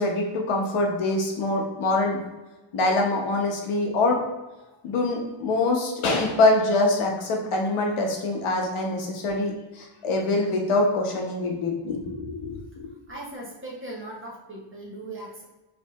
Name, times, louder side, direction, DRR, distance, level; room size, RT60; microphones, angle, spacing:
voice 1, 0.0-2.2 2.7-4.2 4.8-12.6, left 2 dB, 80° left, 1 dB, 0.9 m, -24 dB
voice 2, 13.1-15.4, right 1 dB, 25° right, -4 dB, 0.8 m, -38 dB
4.8 x 2.7 x 2.3 m, 1.1 s
wide cardioid pair, 160°, 49 cm